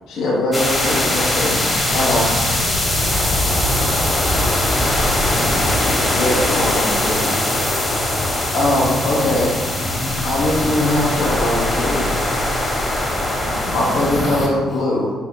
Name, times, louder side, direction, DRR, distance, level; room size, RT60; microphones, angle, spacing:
voice 1, 0.1-2.4 6.1-7.4 8.5-9.5 10.2-12.1 13.7-15.1, left 1 dB, 60° left, -3 dB, 0.6 m, -21 dB
sound 1, 0.5-14.5, left 1 dB, 20° left, 1.0 m, -20 dB
sound 2, 1.7-7.2, equal, 90° left, 1.1 m, -34 dB
voice 2, 1.9-4.0, right 1 dB, 75° right, -5 dB, 0.4 m, -34 dB
voice 3, 3.8-5.6 13.0-13.5, left 1 dB, 5° right, 3 dB, 0.6 m, -38 dB
5.6 x 2.2 x 3.6 m, 1.4 s
figure-of-eight pair, 45°, 0 cm